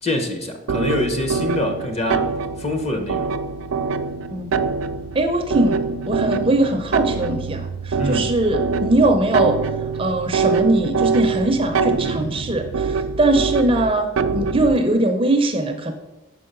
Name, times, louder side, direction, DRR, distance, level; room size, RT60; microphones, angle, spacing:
voice 1, 0.0-2.3 2.6-3.4 8.0-8.3, left 1 dB, 30° left, 4 dB, 0.9 m, -25 dB
sound 1, 0.7-14.8, right 5 dB, 90° right, 0.4 m, -24 dB
voice 2, 5.1-9.6 10.0-15.9, right 1 dB, 25° right, 5 dB, 0.5 m, -21 dB
6.1 x 4.7 x 6.7 m, 1.1 s
head